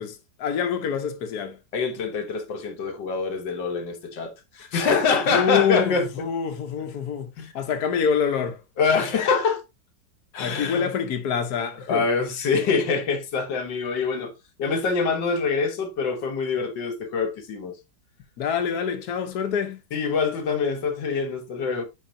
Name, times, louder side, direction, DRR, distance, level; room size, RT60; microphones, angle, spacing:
voice 1, 0.0-1.6 5.3-7.3 7.5-8.6 10.4-12.0 18.4-19.8, left 7 dB, 65° left, 1.4 m, -26 dB
voice 2, 1.7-6.1 7.4-7.5 8.8-9.6 10.3-10.9 11.9-14.3 14.6-17.8 19.9-21.8, left 5 dB, 85° left, 1.8 m, -25 dB
9.5 x 4.5 x 2.6 m
omnidirectional pair, 1.9 m